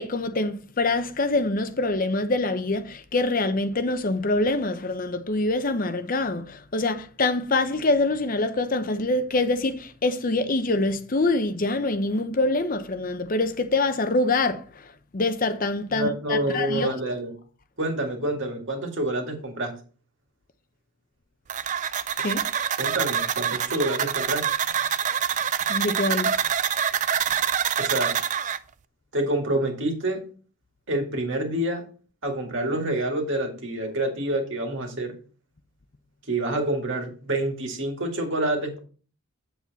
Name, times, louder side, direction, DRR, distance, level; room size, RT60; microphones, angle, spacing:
voice 1, 0.0-16.9 22.2-22.4 25.7-26.3, left 2 dB, 40° left, 0.7 m, -25 dB
voice 2, 15.9-17.3 17.8-19.7 22.8-24.4 27.8-28.2 29.1-30.2 30.9-31.8 32.2-35.1 36.3-38.8, right 1 dB, 55° right, 2.1 m, -27 dB
sound 1, 21.5-28.6, right 8 dB, 35° right, 0.4 m, -26 dB
8.6 x 7.4 x 4.1 m
head